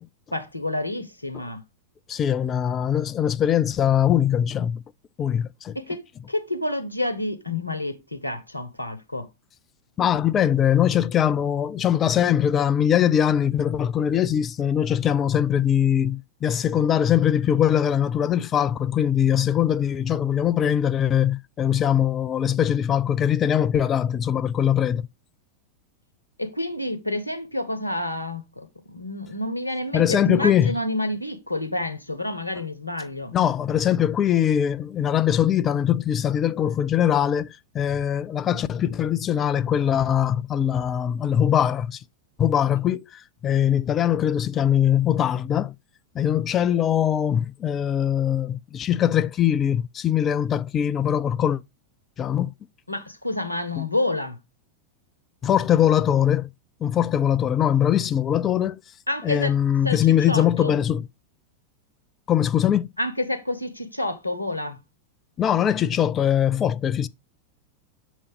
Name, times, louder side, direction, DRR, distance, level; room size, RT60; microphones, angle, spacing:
voice 1, 0.3-1.6 5.7-9.3 26.4-33.3 52.9-54.4 59.1-59.5 59.8-60.8 63.0-64.8, left 1 dB, 85° left, 1.0 m, -29 dB
voice 2, 2.1-4.8 5.2-5.8 10.0-25.1 29.9-30.8 33.3-42.0 42.4-45.7 46.1-51.6 52.2-52.5 53.8-53.9 55.4-56.5 56.8-58.8 59.2-61.1 62.3-62.9 65.4-67.1, left 9 dB, 25° left, 0.4 m, -22 dB
6.7 x 3.1 x 5.1 m
figure-of-eight pair, 90°, 0 cm